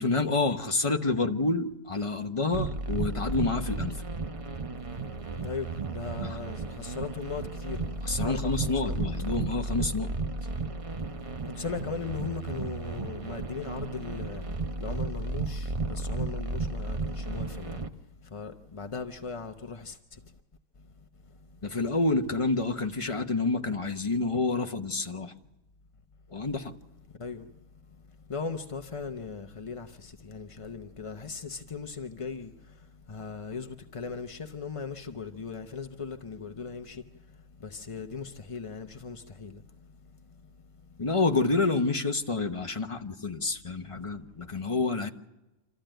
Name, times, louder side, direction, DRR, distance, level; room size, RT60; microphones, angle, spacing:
voice 1, 0.0-4.0 6.2-6.4 8.0-10.1 21.6-25.3 26.3-26.7 41.0-45.1, left 3 dB, 25° left, 0.8 m, -28 dB
sound 1, 2.5-17.9, right 3 dB, 30° right, 0.7 m, -34 dB
voice 2, 5.4-9.0 11.6-14.5 14.8-17.8 18.3-20.0 27.2-27.5 28.3-32.5 33.1-37.0 37.6-39.6, left 5 dB, 40° left, 0.4 m, -38 dB
26.5 x 14.0 x 9.0 m
omnidirectional pair, 1.8 m